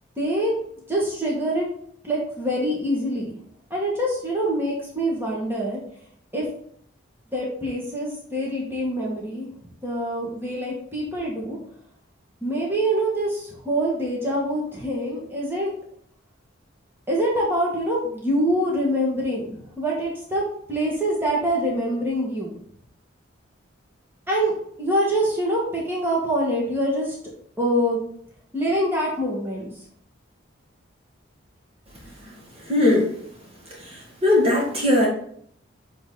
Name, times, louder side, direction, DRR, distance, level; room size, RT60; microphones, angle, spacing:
voice 1, 0.2-0.5 0.9-1.7 2.0-3.3 3.7-5.8 6.3-6.5 7.3-9.5 9.8-11.6 12.4-15.7 17.1-20.4 20.7-22.6 24.3-27.2 27.6-28.0 28.5-29.7, right 1 dB, 10° right, -4 dB, 1.8 m, -25 dB
voice 2, 32.6-33.1 33.8-35.1, left 2 dB, 30° right, -3 dB, 2.0 m, -20 dB
7.7 x 4.0 x 4.0 m, 0.65 s
head